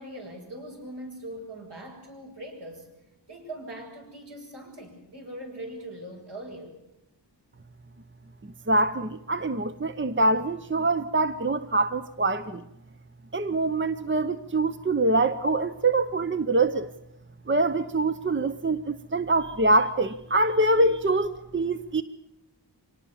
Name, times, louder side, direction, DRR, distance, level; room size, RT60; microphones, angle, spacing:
voice 1, 0.0-2.9 3.3-6.8, right 1 dB, 65° right, 7.8 m, -41 dB
voice 2, 8.7-12.6 13.3-16.9 17.5-22.0, right 2 dB, 25° right, 0.8 m, -24 dB
25.5 x 18.5 x 7.1 m
wide cardioid pair, 90°, 44 cm